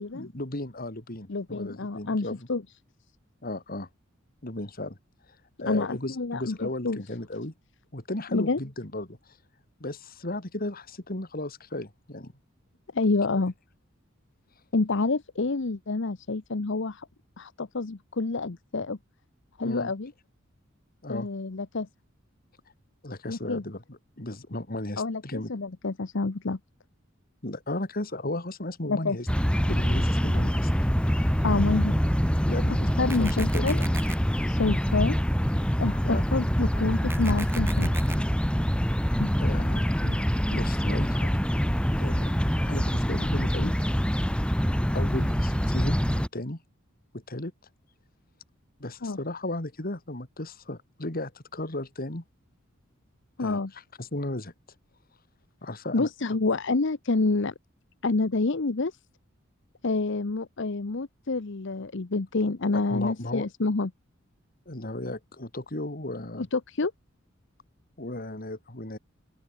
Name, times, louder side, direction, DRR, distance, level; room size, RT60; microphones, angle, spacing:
voice 1, 0.0-2.5 3.4-3.9 4.4-5.0 5.6-7.5 7.9-9.2 9.8-12.3 19.6-19.9 21.0-21.3 23.0-25.5 27.4-29.3 29.6-30.7 32.5-33.9 36.0-36.3 39.4-41.3 42.0-42.3 42.6-43.7 44.9-46.6 47.1-47.5 48.8-52.2 53.4-53.6 54.0-54.5 55.6-56.4 62.7-63.5 64.7-66.5 68.0-69.0, left 1 dB, 45° left, 3.0 m, -35 dB
voice 2, 1.3-2.6 5.7-7.0 8.3-8.6 12.9-13.5 14.7-17.1 17.4-19.0 19.6-20.1 21.1-21.9 23.3-23.6 25.0-26.6 28.9-29.2 31.4-32.0 33.0-33.8 34.5-35.2 35.8-37.9 39.2-39.3 49.0-49.2 53.4-53.7 55.9-57.5 58.0-58.9 59.8-63.9 66.4-66.9, left 3 dB, 65° left, 0.9 m, -28 dB
sound 1, 29.3-46.3, equal, 5° left, 2.4 m, -25 dB
sound 2, 33.1-34.1 37.1-38.1, right 3 dB, 10° right, 1.4 m, -38 dB
open air
head